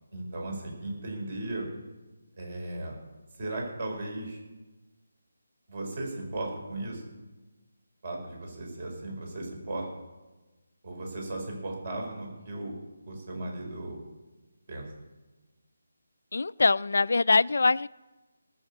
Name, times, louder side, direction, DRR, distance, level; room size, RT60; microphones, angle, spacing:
voice 1, 0.1-1.7 2.4-2.9 3.4-4.4 5.7-7.0 8.0-9.9 10.8-12.8 13.1-14.0 14.7-14.9, right 2 dB, 40° right, 1 dB, 4.9 m, -36 dB
voice 2, 16.3-17.9, left 3 dB, 65° left, 19 dB, 0.4 m, -23 dB
19.0 x 6.4 x 8.5 m, 1.2 s
figure-of-eight pair, 170°, 0 cm